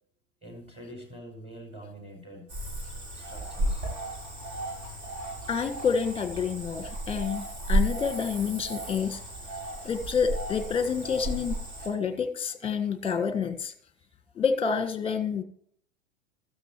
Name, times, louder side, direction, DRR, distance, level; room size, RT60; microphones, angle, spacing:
voice 1, 0.4-2.5 3.1-3.9, right 1 dB, 15° right, 3 dB, 5.5 m, -45 dB
Cricket / Frog, 2.5-11.9, right 1 dB, 55° right, 6.6 m, -33 dB
voice 2, 5.5-9.2 9.8-13.7 14.3-15.4, left 6 dB, 15° left, 10 dB, 1.5 m, -28 dB
16.0 x 13.5 x 3.1 m, 0.62 s
figure-of-eight pair, 90°, 40 cm